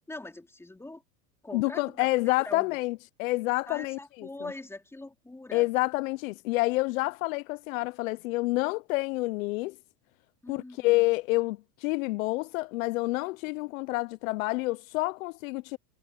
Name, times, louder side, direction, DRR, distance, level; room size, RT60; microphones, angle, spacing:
voice 1, 0.1-1.0 1.4-2.1 2.4-2.8 3.7-5.7 10.4-10.9, left 2 dB, 5° left, 4.3 m, -42 dB
voice 2, 1.5-4.3 5.5-9.8 10.5-15.8, left 21 dB, 65° left, 0.6 m, -28 dB
supercardioid pair, 135°, 44 cm